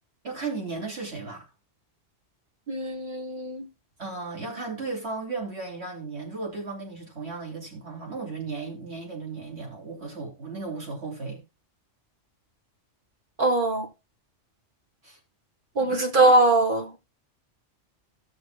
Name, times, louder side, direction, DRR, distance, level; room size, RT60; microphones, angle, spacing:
voice 1, 0.2-1.5 4.0-11.4 15.0-15.2 15.8-16.0, right 4 dB, 60° right, 3.7 m, -35 dB
voice 2, 2.7-3.7 13.4-13.9 15.8-17.0, right 2 dB, 45° right, 2.1 m, -22 dB
17.0 x 6.4 x 2.5 m
omnidirectional pair, 1.3 m